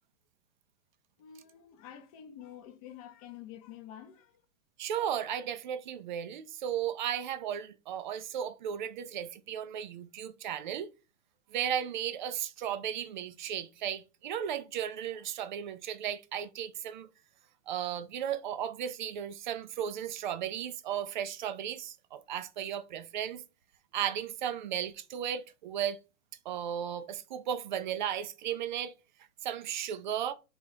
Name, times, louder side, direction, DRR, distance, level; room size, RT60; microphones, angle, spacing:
voice 1, 1.2-4.4, left 10 dB, 25° left, 0.6 m, -48 dB
voice 2, 4.8-10.9 11.5-17.1 17.7-23.4 23.9-26.0 26.5-28.9 29.4-30.3, right 9 dB, 40° right, 0.4 m, -35 dB
3.8 x 2.8 x 4.7 m
hypercardioid pair, 150°, 41 cm